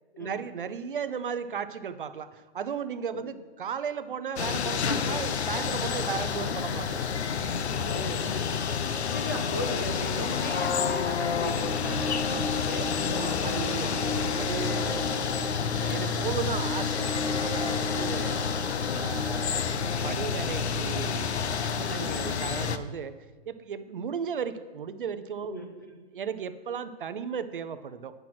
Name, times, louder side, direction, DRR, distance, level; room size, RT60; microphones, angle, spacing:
voice 1, 0.2-7.0 13.1-13.9 14.3-15.1 15.8-18.4 18.9-19.7 20.0-21.3 21.6-23.2 23.5-25.6 26.1-28.1, right 7 dB, 55° right, 12 dB, 0.6 m, -35 dB
sound 1, 4.4-22.8, left 6 dB, 85° left, 0.8 m, -29 dB
voice 2, 7.7-8.6 9.1-12.9 17.9-18.2 21.8-22.4 25.4-26.0, equal, 20° left, 2 dB, 0.5 m, -38 dB
sound 2, 11.6-20.2, left 2 dB, 5° right, 0.8 m, -36 dB
sound 3, 12.8-20.6, equal, 40° left, 1.8 m, -42 dB
9.1 x 6.0 x 6.0 m, 1.3 s
hypercardioid pair, 170°, 32 cm